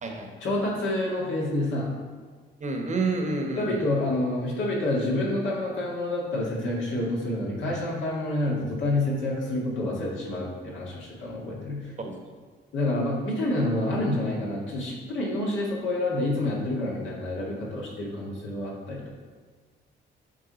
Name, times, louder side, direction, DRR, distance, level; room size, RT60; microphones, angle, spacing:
voice 1, 0.4-1.9 3.6-11.9 12.7-19.2, left 1 dB, 75° left, -3 dB, 1.9 m, -28 dB
voice 2, 2.6-3.9 12.0-12.2, right 3 dB, 35° right, 3 dB, 1.0 m, -29 dB
8.6 x 3.5 x 4.0 m, 1.5 s
cardioid pair, 90°, 20 cm